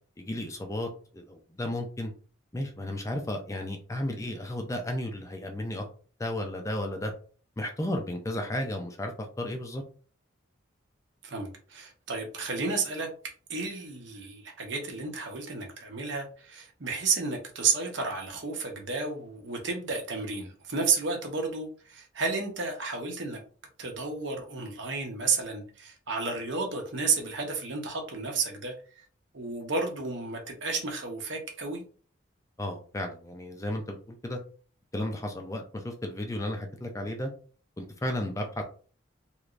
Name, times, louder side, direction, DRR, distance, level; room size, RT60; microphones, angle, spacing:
voice 1, 0.2-2.1 2.5-5.9 6.2-7.1 7.6-9.8 32.6-34.4 34.9-37.3 37.8-38.6, left 1 dB, 15° left, 0.4 m, -33 dB
voice 2, 11.2-13.1 13.5-23.4 23.8-28.7 29.3-31.8, right 4 dB, 65° right, 0.9 m, -32 dB
3.2 x 3.1 x 2.5 m
head